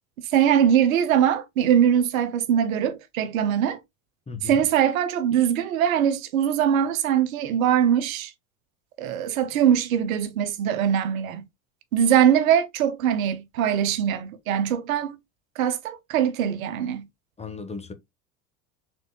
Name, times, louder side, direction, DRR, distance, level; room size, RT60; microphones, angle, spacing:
voice 1, 0.3-3.8 4.4-8.3 9.0-11.5 11.9-15.2 15.6-17.1, right 9 dB, 75° right, 0.9 m, -22 dB
voice 2, 4.3-4.6 17.4-17.9, left 5 dB, 15° left, 1.0 m, -36 dB
5.0 x 3.8 x 2.2 m
hypercardioid pair, 70°, 42 cm